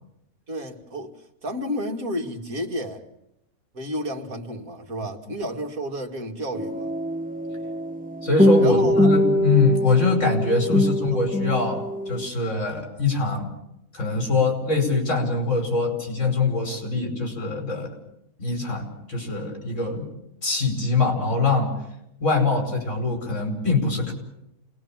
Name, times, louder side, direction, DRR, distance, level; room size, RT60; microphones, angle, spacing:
voice 1, 0.5-1.1 1.4-3.0 3.7-6.9 8.6-9.2 10.8-11.2, equal, 65° right, 2 dB, 2.8 m, -31 dB
sound 1, 6.5-12.3, equal, 5° right, 1.4 m, -23 dB
voice 2, 8.2-13.5 13.9-17.9 18.4-20.1 20.4-21.7 22.2-24.1, left 3 dB, 50° left, 4 dB, 5.6 m, -23 dB
28.5 x 20.0 x 7.4 m, 0.81 s
omnidirectional pair, 1.6 m